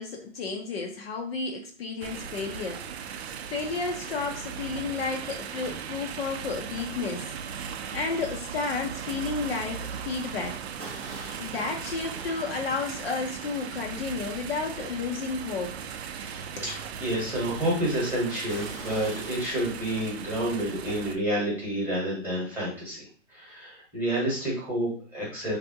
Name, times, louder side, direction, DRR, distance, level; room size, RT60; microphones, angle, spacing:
voice 1, 0.0-3.2 3.5-7.3 7.9-10.6 11.1-15.8 16.6-16.7, left 4 dB, 50° left, 2 dB, 0.6 m, -32 dB
sound 1, 2.0-21.2, right 7 dB, 55° right, 0.4 m, -38 dB
sound 2, 10.8-12.5 13.1-13.2 13.8-13.9 14.4-14.5 18.5-19.7, equal, 10° left, 0.4 m, -46 dB
voice 2, 16.1-25.6, right 1 dB, 5° right, -6 dB, 1.1 m, -29 dB
3.3 x 2.7 x 2.6 m, 0.42 s
hypercardioid pair, 160°, 38 cm